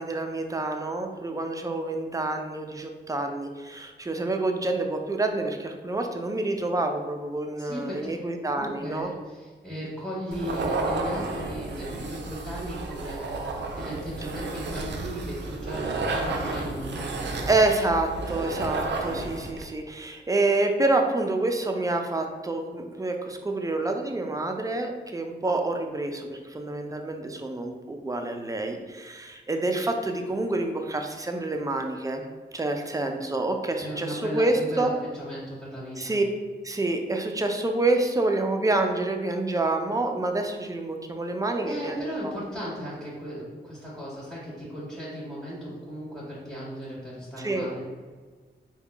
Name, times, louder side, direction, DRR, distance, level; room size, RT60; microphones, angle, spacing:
voice 1, 0.0-9.1 17.5-32.2 32.5-34.9 36.0-36.2 36.6-42.0 47.4-47.7, right 2 dB, 20° right, 4 dB, 0.4 m, -27 dB
voice 2, 7.6-8.1 8.4-17.6 33.7-36.2 41.6-47.8, equal, ahead, -10 dB, 1.4 m, -36 dB
sound 1, 10.3-19.6, right 3 dB, 70° right, 0.4 m, -32 dB
3.5 x 2.3 x 3.4 m, 1.5 s
cardioid pair, 60°, 19 cm